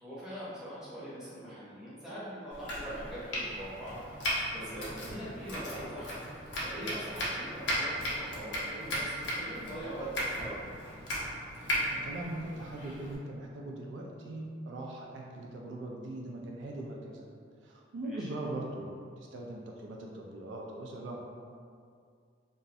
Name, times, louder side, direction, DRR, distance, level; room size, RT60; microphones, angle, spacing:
voice 1, 0.0-6.3 6.6-10.7 18.0-18.3, equal, 5° right, -11 dB, 0.7 m, -42 dB
Domestic sounds home sounds, 2.5-13.2, equal, 70° left, 0.6 m, -36 dB
voice 2, 11.5-17.3 17.6-21.2, right 1 dB, 75° right, -1 dB, 0.3 m, -41 dB
2.4 x 2.0 x 2.6 m, 2.2 s
head